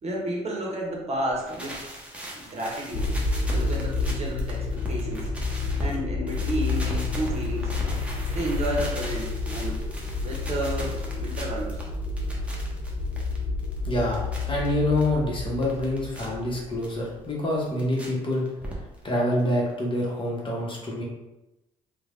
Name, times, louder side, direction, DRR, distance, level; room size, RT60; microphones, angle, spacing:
voice 1, 0.0-1.8 2.4-3.2 3.4-5.3 5.8-7.7 8.3-9.8 10.1-11.8, right 1 dB, 40° right, -2 dB, 0.9 m, -31 dB
sound 1, 1.3-6.0 6.3-15.1 15.4-16.3 16.8-16.9 17.3-18.1 18.3-19.1 19.4-19.5 19.7-19.8 20.0-20.1, right 1 dB, 10° right, 0.9 m, -38 dB
sound 2, 2.9-17.2, left 3 dB, 50° left, 0.5 m, -30 dB
voice 2, 13.8-18.4 19.0-21.0, left 1 dB, 30° left, -3 dB, 1.0 m, -26 dB
3.1 x 2.2 x 2.5 m, 0.96 s
hypercardioid pair, 60°, 16 cm